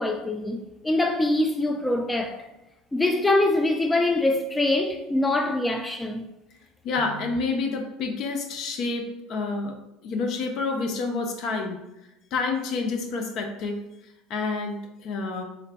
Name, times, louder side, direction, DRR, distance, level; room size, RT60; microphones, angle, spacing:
voice 1, 0.0-2.4 2.9-6.3, left 2 dB, 10° left, 0.3 m, -24 dB
voice 2, 6.8-9.8 10.0-11.8 12.3-13.8 14.3-15.4, left 4 dB, 55° left, 0.6 m, -28 dB
3.8 x 3.2 x 2.2 m
hypercardioid pair, 85°, 0 cm